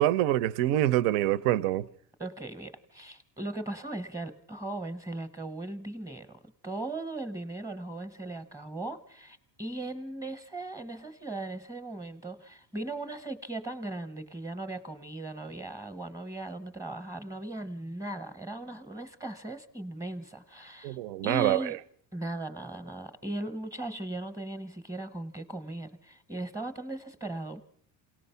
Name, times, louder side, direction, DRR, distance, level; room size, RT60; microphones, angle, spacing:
voice 1, 0.0-1.9 20.8-21.6, right 14 dB, 85° right, 0.8 m, -25 dB
voice 2, 2.2-21.0 21.2-21.8 22.1-27.6, right 2 dB, 5° right, 0.8 m, -38 dB
27.5 x 18.0 x 5.7 m
cardioid pair, 170°, 45 cm